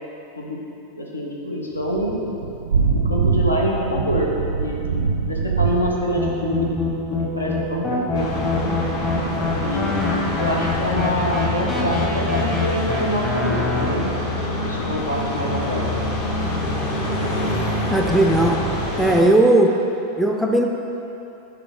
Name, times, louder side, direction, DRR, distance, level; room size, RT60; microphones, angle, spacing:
voice 1, 0.9-2.4 3.1-4.3 4.6-4.8 5.3-6.8 7.1-8.3 8.5-8.8 9.6-14.1 14.6-15.8, equal, 75° left, -2 dB, 0.8 m, -26 dB
Thunder / Rain, 1.8-11.3, right 5 dB, 65° right, 0.4 m, -26 dB
sound 1, 6.2-13.8, left 3 dB, 15° left, 0.9 m, -26 dB
sound 2, 8.1-19.2, left 1 dB, 45° left, 0.9 m, -25 dB
voice 2, 17.9-18.6 19.0-19.7 20.2-20.6, right 1 dB, ahead, 1 dB, 0.4 m, -17 dB
5.8 x 3.3 x 5.0 m, 2.9 s
figure-of-eight pair, 90°, 0 cm